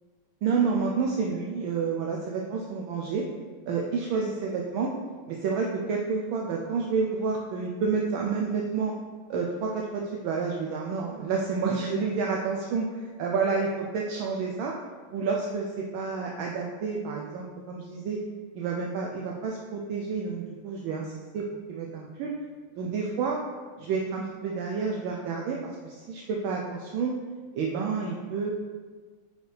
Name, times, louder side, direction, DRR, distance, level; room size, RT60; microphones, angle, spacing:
voice 1, 0.4-3.2 3.7-4.9 5.3-8.9 9.3-14.7 15.1-18.2 18.5-22.3 22.8-23.4 23.8-27.1 27.5-28.5, right 5 dB, 75° right, -1 dB, 1.3 m, -29 dB
8.0 x 4.6 x 3.3 m, 1.5 s
omnidirectional pair, 2.4 m